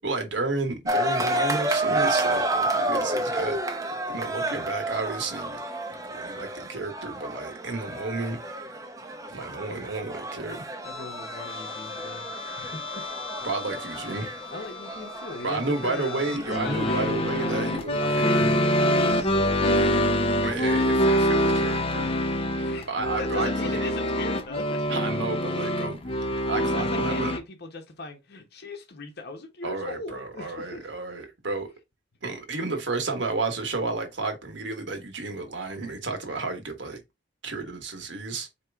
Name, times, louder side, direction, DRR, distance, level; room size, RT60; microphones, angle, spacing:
voice 1, 0.0-3.6 4.1-5.6 6.1-8.4 9.3-10.6 13.4-14.3 15.4-19.1 20.4-22.1 22.9-23.5 23.8-23.9 24.9-27.3 29.6-31.7 32.2-37.0 37.4-38.5, right 3 dB, 70° right, 1.4 m, -32 dB
sound 1, 0.9-17.7, right 1 dB, 20° right, 0.7 m, -31 dB
voice 2, 10.8-12.3 12.6-13.1 14.5-20.9 22.5-22.9 23.2-24.9 26.7-30.9, left 2 dB, 60° left, 0.9 m, -39 dB
sound 2, 10.9-27.4, equal, 30° left, 0.6 m, -26 dB
4.4 x 3.0 x 3.4 m
head